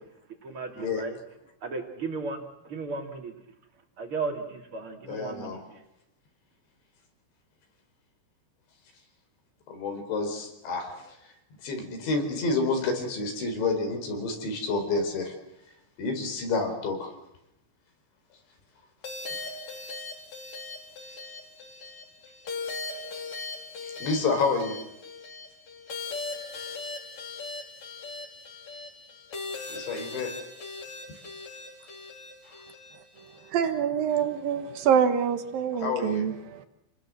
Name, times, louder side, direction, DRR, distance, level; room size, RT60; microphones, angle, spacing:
voice 1, 0.4-1.2 1.6-2.4 2.7-3.3 4.0-5.6, right 4 dB, 30° right, 4 dB, 2.9 m, -34 dB
voice 2, 5.1-5.6 9.7-11.2 11.6-15.4 16.0-17.1 24.0-24.8 29.7-30.3 35.8-36.2, left 3 dB, 65° left, 5 dB, 6.6 m, -29 dB
sound 1, 19.0-33.5, left 3 dB, 40° left, 4.0 m, -39 dB
voice 3, 33.5-36.7, right 8 dB, 65° right, 9 dB, 2.4 m, -25 dB
29.5 x 20.0 x 7.7 m, 0.85 s
omnidirectional pair, 5.7 m